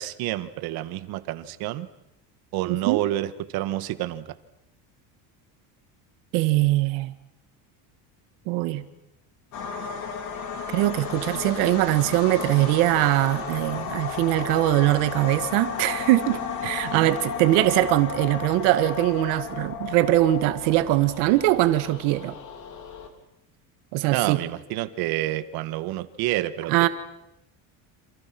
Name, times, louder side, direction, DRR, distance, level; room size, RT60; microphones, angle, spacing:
voice 1, 0.0-1.9 2.5-4.2 16.9-17.1 24.1-26.9, right 15 dB, 60° right, 12 dB, 1.8 m, -28 dB
voice 2, 2.7-3.0 6.3-7.1 8.5-8.8 10.7-22.3 23.9-24.4 26.7-26.9, right 16 dB, 85° right, 10 dB, 2.2 m, -22 dB
sound 1, 9.5-23.1, left 6 dB, 45° left, 3.8 m, -34 dB
28.5 x 27.5 x 6.2 m, 0.83 s
cardioid pair, 165°, 40 cm